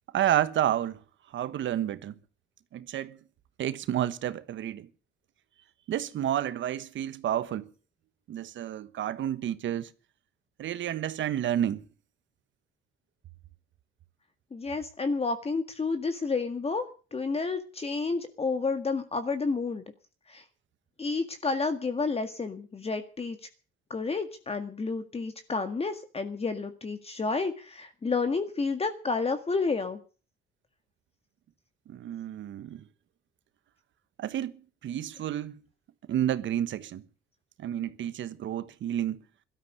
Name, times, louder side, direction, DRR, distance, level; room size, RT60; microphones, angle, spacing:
voice 1, 0.1-1.0 1.3-2.2 2.7-3.2 3.6-4.9 5.9-7.7 8.3-9.9 10.6-11.9 31.9-32.8 34.2-35.6 36.1-37.0 37.6-39.2, right 11 dB, 70° right, 1.2 m, -30 dB
voice 2, 14.5-16.9 17.1-19.8 20.3-20.4 21.0-23.4 23.9-30.0, left 4 dB, 30° left, 1.8 m, -30 dB
16.5 x 13.0 x 6.5 m
cardioid pair, 90°, 20 cm